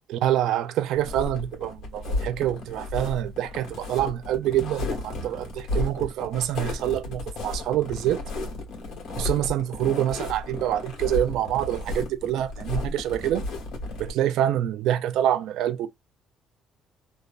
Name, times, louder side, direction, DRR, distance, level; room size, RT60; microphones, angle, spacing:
voice 1, 0.1-8.2 9.2-13.4 14.0-15.9, right 12 dB, 70° right, 0.4 m, -26 dB
sound 1, 1.0-14.1, left 2 dB, 70° left, 1.5 m, -33 dB
3.1 x 2.5 x 2.3 m
cardioid pair, 175°, 0 cm